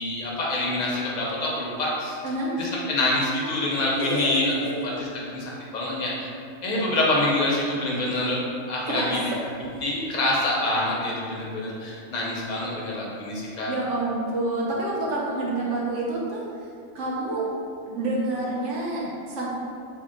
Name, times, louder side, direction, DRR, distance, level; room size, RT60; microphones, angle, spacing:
voice 1, 0.0-2.2 2.6-6.3 6.6-8.4 8.7-9.2 9.8-13.7, left 1 dB, 50° left, -5 dB, 0.5 m, -26 dB
voice 2, 2.2-2.5 4.0-4.7 8.9-9.2 9.6-9.8 13.7-16.4 16.9-17.5 17.9-19.5, right 2 dB, 70° right, -4 dB, 1.0 m, -28 dB
3.5 x 2.1 x 3.7 m, 2.5 s
omnidirectional pair, 1.4 m